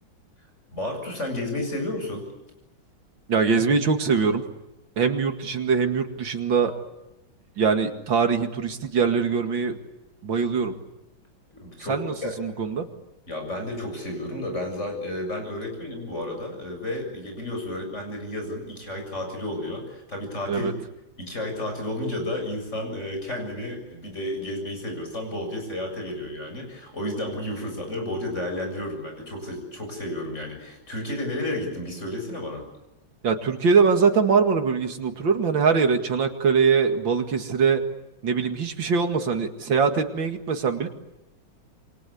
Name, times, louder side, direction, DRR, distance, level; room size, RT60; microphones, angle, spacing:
voice 1, 0.7-2.3 11.5-12.3 13.3-20.7 21.2-32.7, left 1 dB, 35° left, 4 dB, 7.7 m, -32 dB
voice 2, 3.3-4.4 5.0-6.7 7.6-9.8 10.2-10.7 11.9-12.9 20.5-20.7 33.2-37.8 38.2-40.9, right 5 dB, 70° right, 5 dB, 2.8 m, -22 dB
28.0 x 24.0 x 8.4 m, 0.94 s
omnidirectional pair, 2.2 m